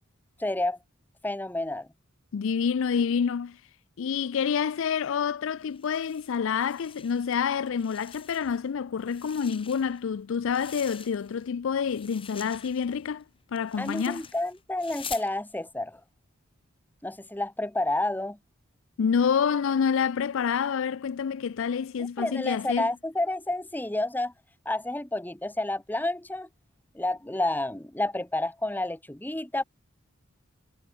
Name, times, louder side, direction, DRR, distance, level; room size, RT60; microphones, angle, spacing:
voice 1, 0.4-0.8 1.2-1.9 13.8-16.0 17.0-18.4 22.2-24.3 24.6-26.5 26.9-29.6, left 2 dB, 10° left, 1.1 m, -30 dB
voice 2, 2.3-3.6 4.0-13.2 13.5-14.3 19.0-22.9, left 6 dB, 70° left, 0.4 m, -27 dB
sound 1, 5.7-7.4 7.7-8.7 9.0-11.5 11.8-15.3, left 7 dB, 25° left, 5.9 m, -46 dB
head